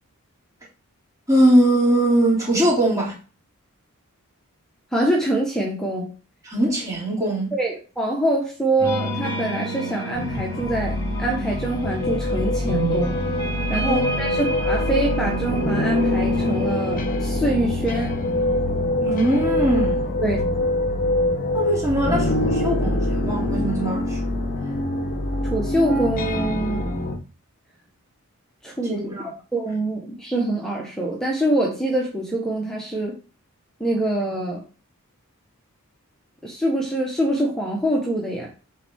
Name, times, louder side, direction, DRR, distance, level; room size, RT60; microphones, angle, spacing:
voice 1, 1.3-3.1 6.4-7.5 13.8-14.0 19.0-20.1 21.5-24.2 28.8-29.3, right 1 dB, 15° right, 3.0 m, -21 dB
voice 2, 4.9-6.1 7.5-13.2 13.7-18.1 20.2-20.4 25.4-26.9 28.6-29.1 29.5-33.2 33.8-34.6 36.4-38.5, right 1 dB, 5° left, 1.2 m, -24 dB
sound 1, 8.8-17.0, right 1 dB, 20° left, 2.3 m, -30 dB
sound 2, 10.2-27.2, left 1 dB, 40° left, 1.0 m, -24 dB
8.2 x 4.2 x 3.6 m
head